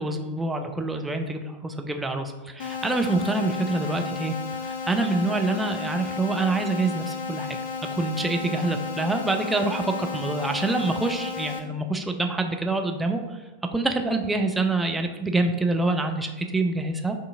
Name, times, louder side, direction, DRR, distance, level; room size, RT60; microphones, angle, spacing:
voice 1, 0.0-4.4 4.6-7.6 7.9-13.4 13.7-17.2, right 2 dB, 10° right, 4 dB, 0.4 m, -26 dB
sound 1, 2.6-11.6, left 5 dB, 60° left, 0.5 m, -33 dB
7.5 x 2.7 x 2.5 m, 1.2 s
figure-of-eight pair, 90°, 0 cm